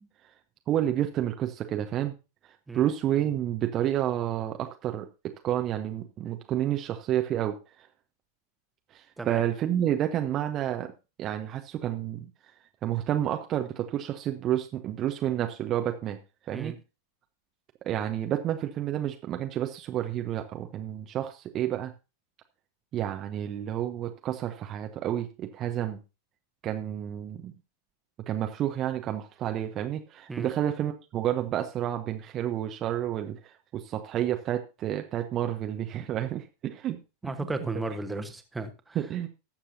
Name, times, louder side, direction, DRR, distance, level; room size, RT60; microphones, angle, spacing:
voice 1, 0.7-2.1 2.7-7.9 8.9-10.9 11.2-12.3 12.8-16.2 16.5-16.7 17.8-21.9 22.9-26.0 26.6-27.5 28.3-37.0 38.9-39.3, right 11 dB, 30° right, 5 dB, 0.9 m, -30 dB
voice 2, 37.2-39.0, right 3 dB, 10° right, 7 dB, 1.3 m, -34 dB
19.0 x 7.3 x 2.8 m, 0.29 s
figure-of-eight pair, 90°, 0 cm